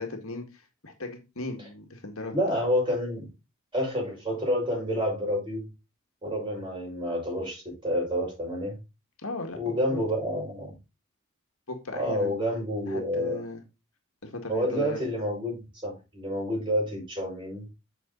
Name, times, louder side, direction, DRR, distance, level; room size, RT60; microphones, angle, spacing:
voice 1, 0.0-2.4 9.2-10.0 11.7-12.4 12.9-13.6 14.2-15.1, left 2 dB, 75° left, 1.9 m, -37 dB
voice 2, 2.3-3.3 3.7-5.7 6.2-8.8 9.5-10.8 11.9-13.4 14.5-17.7, equal, 20° right, 6.1 m, -29 dB
8.7 x 5.9 x 4.0 m
head